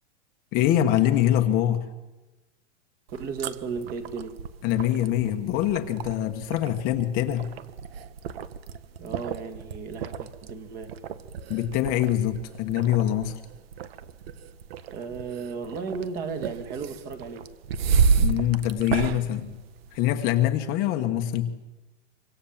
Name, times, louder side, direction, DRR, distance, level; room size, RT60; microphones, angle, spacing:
voice 1, 0.5-1.9 4.6-7.5 11.5-13.4 18.2-19.6 19.9-21.5, left 12 dB, 25° left, 1.3 m, -24 dB
voice 2, 3.1-4.4 9.0-11.0 14.9-17.5, right 5 dB, 25° right, 2.1 m, -35 dB
sound 1, 3.1-20.3, right 6 dB, 55° right, 1.5 m, -31 dB
25.5 x 25.5 x 7.4 m
supercardioid pair, 165°, 36 cm